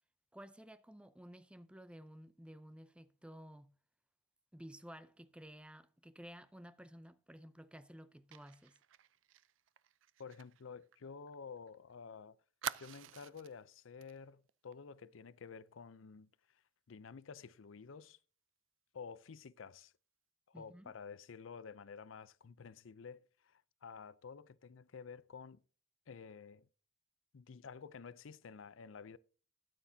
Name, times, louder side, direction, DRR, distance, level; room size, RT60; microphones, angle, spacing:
voice 1, 0.3-3.7 4.5-8.8 20.5-20.9, equal, 5° right, 0.5 m, -54 dB
Fire, 8.3-11.8 12.0-12.1 12.6-13.6 14.0-14.2 14.5-14.7, right 10 dB, 70° right, 0.5 m, -47 dB
voice 2, 10.2-12.4 12.8-16.6 16.9-18.2 18.9-19.9 20.5-25.6 26.1-26.7 27.3-29.2, left 5 dB, 70° left, 0.5 m, -51 dB
13.0 x 9.3 x 2.7 m
head